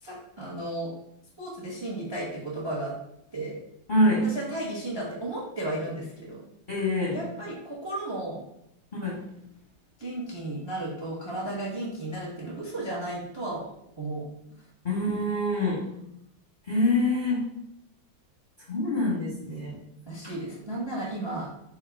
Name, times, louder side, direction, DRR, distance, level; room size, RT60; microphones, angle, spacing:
voice 1, 0.0-0.9 1.4-2.9 3.3-3.6 4.2-6.4 7.1-8.4 10.0-13.7 14.0-14.3 20.1-21.5, right 1 dB, 25° right, -5 dB, 0.6 m, -34 dB
voice 2, 3.9-4.2 6.7-7.2 8.9-9.2 14.8-15.8 16.7-17.5 18.7-19.7, left 1 dB, 35° left, -7 dB, 0.9 m, -25 dB
3.5 x 2.8 x 4.6 m, 0.79 s
omnidirectional pair, 2.2 m